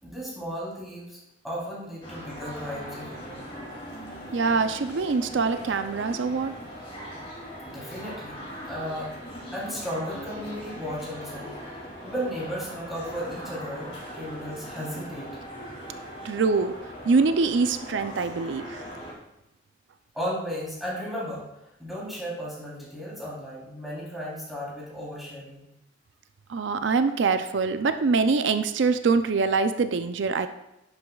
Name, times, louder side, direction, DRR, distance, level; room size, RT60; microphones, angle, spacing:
voice 1, 0.0-1.2 1.4-3.5 7.7-8.4 8.7-9.1 9.5-15.3 20.1-21.4 21.8-25.6, equal, ahead, -8 dB, 3.4 m, -35 dB
sound 1, 2.0-19.1, equal, 30° left, 2.6 m, -40 dB
voice 2, 4.3-6.5 16.2-16.7 17.0-18.8 26.5-30.5, right 4 dB, 85° right, 9 dB, 0.5 m, -24 dB
11.0 x 8.1 x 2.3 m, 0.89 s
head